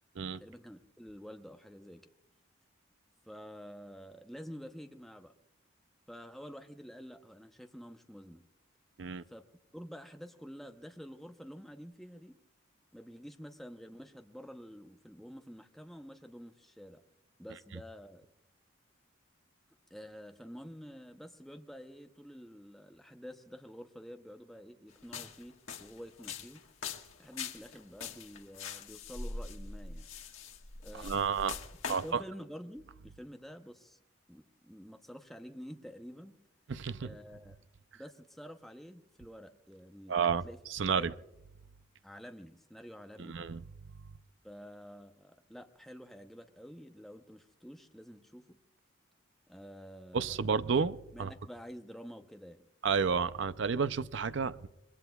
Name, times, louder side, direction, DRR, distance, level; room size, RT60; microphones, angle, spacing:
voice 1, 0.4-2.0 3.3-5.3 6.1-8.4 9.3-9.5 9.7-12.4 12.9-17.0 17.4-18.3 19.9-26.6 27.2-30.1 30.8-31.5 31.9-34.0 34.3-36.4 37.0-37.6 37.9-40.2 40.4-40.6 40.9-41.1 42.0-43.4 44.4-48.6 49.5-50.4 51.1-52.7, equal, ahead, 5 dB, 0.7 m, -49 dB
sound 1, 25.0-32.1, left 5 dB, 80° left, 1.5 m, -43 dB
voice 2, 30.9-31.6 31.9-32.2 36.7-37.1 40.1-40.4 40.7-41.1 43.2-43.6 50.1-51.3 52.8-54.7, right 5 dB, 65° right, 14 dB, 0.5 m, -31 dB
25.5 x 22.0 x 2.3 m, 0.87 s
head